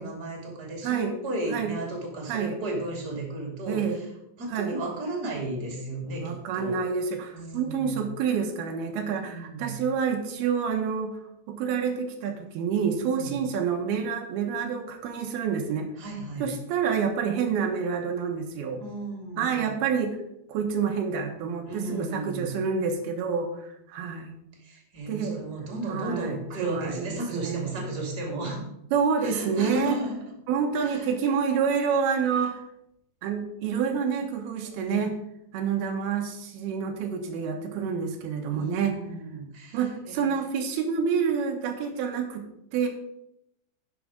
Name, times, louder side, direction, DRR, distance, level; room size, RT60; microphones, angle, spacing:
voice 1, 0.0-4.1 4.4-6.8 7.3-8.0 9.2-9.8 13.0-13.4 16.0-16.5 18.8-19.8 21.6-22.5 24.5-28.7 29.2-30.2 30.8-31.1 32.3-32.5 34.6-35.0 38.5-40.2, right 2 dB, 30° right, 0 dB, 2.8 m, -34 dB
voice 2, 3.7-4.0 4.5-4.7 6.2-11.2 11.5-15.9 16.4-18.8 19.4-20.2 20.5-24.3 25.1-25.4 25.9-27.7 28.9-30.0 30.5-32.6 33.2-35.1 35.5-39.0 39.7-42.4 42.7-42.9, right 6 dB, 90° right, 4 dB, 3.1 m, -28 dB
11.0 x 6.3 x 5.1 m, 0.80 s
omnidirectional pair, 4.3 m